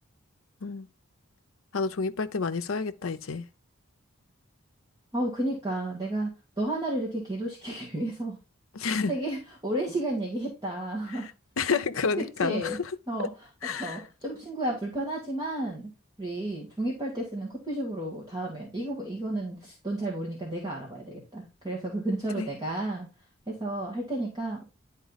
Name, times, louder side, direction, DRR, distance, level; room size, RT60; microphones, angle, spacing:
voice 1, 1.7-3.5 8.7-9.1 11.6-12.8 13.6-14.0 22.3-22.5, left 4 dB, 75° left, 0.7 m, -29 dB
voice 2, 5.1-6.3 6.6-8.4 8.9-11.3 12.2-12.8 13.1-15.9 16.2-23.1 23.5-24.6, right 1 dB, 20° right, 1.8 m, -32 dB
10.5 x 4.3 x 4.0 m
head